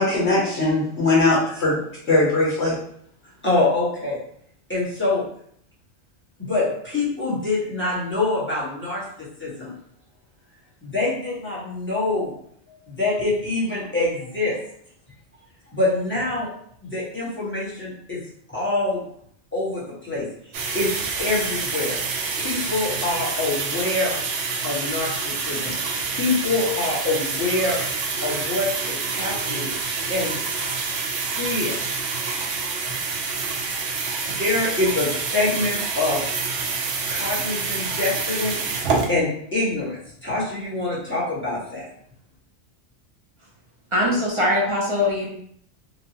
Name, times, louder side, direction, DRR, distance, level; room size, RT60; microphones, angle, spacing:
voice 1, 0.0-1.8 2.0-2.8, left 2 dB, 70° left, -6 dB, 1.2 m, -20 dB
voice 2, 3.4-4.2 4.7-5.2 6.4-9.0 9.4-9.7 10.8-12.3 12.7-14.6 15.7-16.5 16.8-18.2 18.5-19.0 19.5-20.9 21.2-22.0 22.4-24.2 24.6-25.1 25.4-27.8 28.2-29.7 30.1-30.3 31.4-31.8 34.3-36.2 37.1-41.9, left 2 dB, 10° left, -8 dB, 0.9 m, -25 dB
sound 1, 20.5-39.1, right 4 dB, 90° right, 0.9 m, -27 dB
voice 3, 43.9-45.3, left 1 dB, 35° right, -5 dB, 0.5 m, -21 dB
2.9 x 2.2 x 2.7 m, 0.67 s
omnidirectional pair, 1.2 m